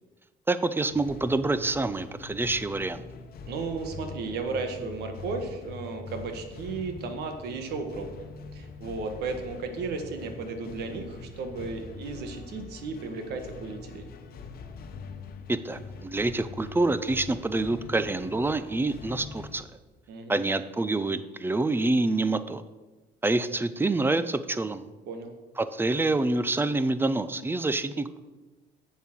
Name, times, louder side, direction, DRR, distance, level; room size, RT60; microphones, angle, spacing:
voice 1, 0.5-3.0 15.5-19.7 20.3-22.6 23.2-24.9 25.6-28.2, right 2 dB, 15° right, 13 dB, 0.5 m, -27 dB
sound 1, 0.9-19.6, left 4 dB, 60° left, 0.9 m, -43 dB
voice 2, 3.5-8.1 8.5-14.1 20.1-20.4 25.1-25.3, right 4 dB, 75° right, 6 dB, 1.4 m, -34 dB
7.4 x 7.3 x 6.1 m, 1.2 s
cardioid pair, 110°, 17 cm